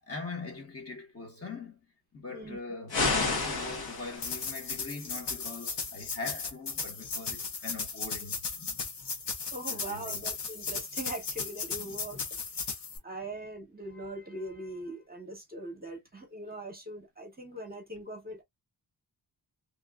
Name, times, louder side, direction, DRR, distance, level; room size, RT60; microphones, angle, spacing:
voice 1, 0.1-1.8 2.1-8.8 9.7-10.2 11.8-11.9, left 3 dB, 35° left, 1.2 m, -42 dB
voice 2, 2.3-2.6 9.5-12.4 13.0-18.4, right 1 dB, 25° right, 0.9 m, -41 dB
sound 1, 2.9-4.5, left 3 dB, 65° left, 1.3 m, -30 dB
sound 2, 4.2-13.0, left 4 dB, 90° left, 1.2 m, -36 dB
3.0 x 2.4 x 2.3 m
wide cardioid pair, 150°, 41 cm